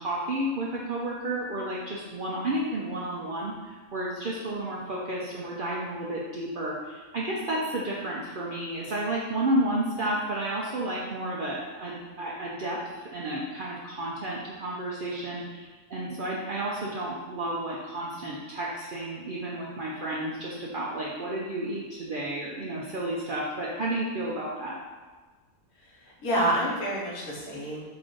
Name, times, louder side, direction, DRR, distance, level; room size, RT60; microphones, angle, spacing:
voice 1, 0.0-24.8, right 1 dB, 70° right, -4 dB, 0.5 m, -31 dB
voice 2, 25.8-27.8, right 1 dB, 90° left, -5 dB, 1.5 m, -28 dB
5.0 x 2.5 x 3.7 m, 1.3 s
omnidirectional pair, 1.5 m